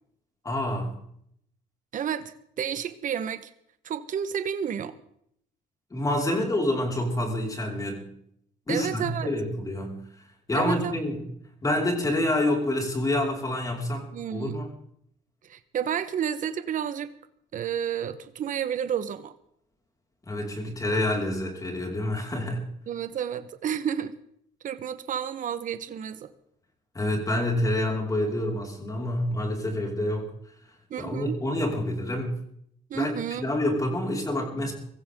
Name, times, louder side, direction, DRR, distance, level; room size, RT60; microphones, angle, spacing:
voice 1, 0.4-1.0 5.9-8.1 8.7-10.0 10.5-11.3 11.6-14.7 20.2-22.7 26.9-30.3 31.0-32.4 32.9-33.1 33.4-34.7, left 1 dB, 20° left, 0 dB, 5.4 m, -27 dB
voice 2, 1.9-3.5 3.8-5.0 8.7-9.3 10.5-10.9 14.1-14.6 15.5-17.1 17.5-19.3 22.9-24.1 24.6-26.3 30.9-31.4 32.9-33.4, right 8 dB, 50° right, 11 dB, 1.4 m, -31 dB
24.0 x 15.0 x 3.9 m, 0.70 s
cardioid pair, 110°, 17 cm